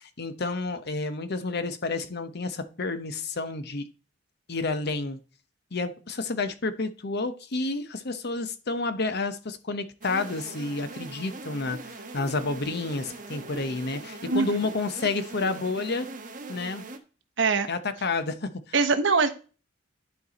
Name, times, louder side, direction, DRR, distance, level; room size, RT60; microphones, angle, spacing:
voice 1, 0.0-3.8 4.5-5.2 5.7-16.1 16.5-16.9 17.7-18.7, left 3 dB, 55° left, 0.9 m, -30 dB
sound 1, 10.0-17.0, right 3 dB, 45° right, 1.2 m, -41 dB
voice 2, 17.4-17.7 18.7-19.3, right 4 dB, 70° right, 1.1 m, -22 dB
11.0 x 4.7 x 4.1 m
head